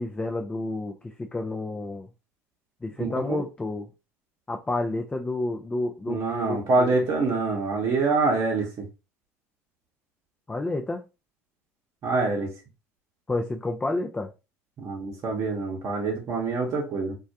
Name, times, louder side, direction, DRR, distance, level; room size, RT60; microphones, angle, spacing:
voice 1, 0.0-2.1 2.8-3.9 4.5-6.9 10.5-11.0 13.3-14.3, left 2 dB, 15° left, 0.3 m, -30 dB
voice 2, 3.0-3.4 6.1-8.9 12.0-12.5 14.8-17.1, right 3 dB, 45° right, 0.8 m, -25 dB
2.3 x 2.1 x 2.7 m
hypercardioid pair, 70°, 7 cm